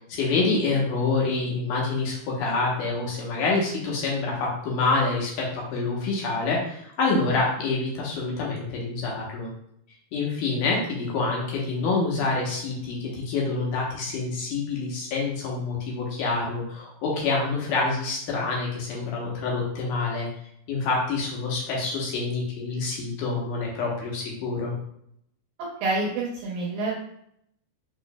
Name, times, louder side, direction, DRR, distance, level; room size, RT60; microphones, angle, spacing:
voice 1, 0.1-9.5 10.1-20.3 20.7-24.7, left 3 dB, 70° left, -3 dB, 2.3 m, -27 dB
voice 2, 25.8-27.0, right 3 dB, 75° right, -3 dB, 2.3 m, -27 dB
6.5 x 3.1 x 2.3 m, 0.72 s
omnidirectional pair, 4.3 m